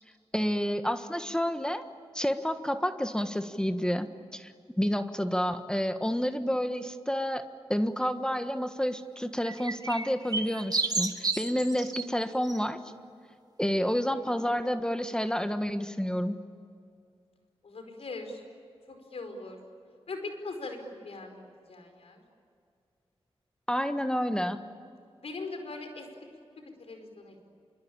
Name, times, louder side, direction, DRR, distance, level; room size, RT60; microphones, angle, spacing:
voice 1, 0.3-1.8 2.1-4.1 4.3-4.5 4.8-7.4 7.7-12.8 13.6-16.4 23.7-24.6, equal, 5° left, 8 dB, 1.4 m, -29 dB
sound 1, 9.4-12.0 12.4-12.6, right 3 dB, 40° right, 2.1 m, -31 dB
voice 2, 17.6-18.4 18.9-19.6 20.1-22.2 25.2-26.1 26.6-27.5, left 3 dB, 75° left, 5 dB, 5.1 m, -41 dB
26.5 x 24.0 x 8.8 m, 2.4 s
cardioid pair, 65°, 10 cm